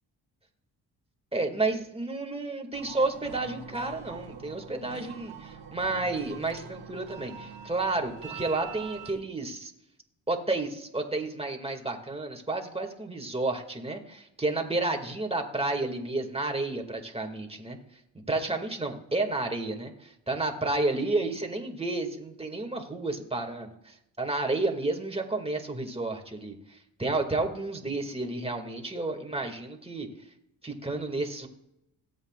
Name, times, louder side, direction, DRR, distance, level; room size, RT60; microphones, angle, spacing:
voice 1, 1.3-9.7 10.3-17.8 18.1-30.1 30.6-31.5, right 2 dB, 15° right, 3 dB, 2.1 m, -31 dB
sound 1, 2.7-9.1, right 6 dB, 85° right, 1.7 m, -44 dB
17.5 x 8.5 x 2.4 m, 0.81 s
supercardioid pair, 65°, 42 cm